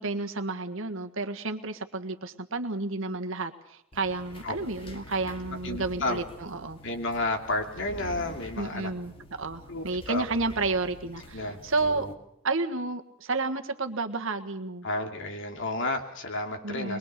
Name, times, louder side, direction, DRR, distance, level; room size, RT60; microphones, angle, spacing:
voice 1, 0.0-6.8 8.6-12.1 12.4-14.9 16.6-17.0, right 3 dB, 65° right, 6 dB, 1.6 m, -31 dB
sound 1, 3.9-12.1, left 1 dB, 25° left, 2.4 m, -46 dB
voice 2, 5.6-6.2 6.8-8.9 9.7-10.2 11.3-12.1 14.8-17.0, left 2 dB, 60° left, 4 dB, 2.7 m, -32 dB
22.5 x 22.0 x 6.8 m, 0.75 s
head